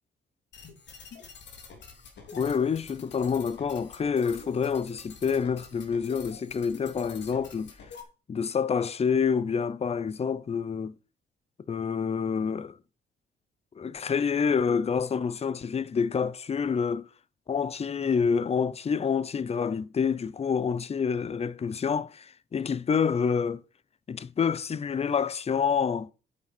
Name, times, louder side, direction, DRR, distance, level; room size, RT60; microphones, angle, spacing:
sound 1, 0.5-8.0, left 5 dB, 65° left, 3.1 m, -47 dB
voice 1, 2.3-7.7 8.3-10.9 11.7-12.8 13.8-17.1 17.5-23.6 24.1-26.1, left 6 dB, 30° left, 0.7 m, -27 dB
8.8 x 8.5 x 6.1 m
cardioid pair, 90°, 20 cm